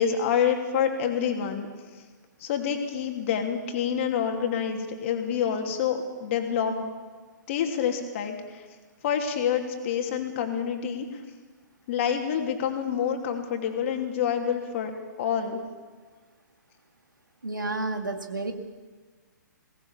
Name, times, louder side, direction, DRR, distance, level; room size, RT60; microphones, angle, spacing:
voice 1, 0.0-1.7 2.4-6.9 7.5-8.6 9.0-11.2 11.9-14.9 15.2-15.6, left 8 dB, 40° left, 4 dB, 2.9 m, -27 dB
voice 2, 17.4-18.5, right 2 dB, 80° right, 6 dB, 2.3 m, -30 dB
21.5 x 18.0 x 7.3 m, 1.4 s
figure-of-eight pair, 120°, 10 cm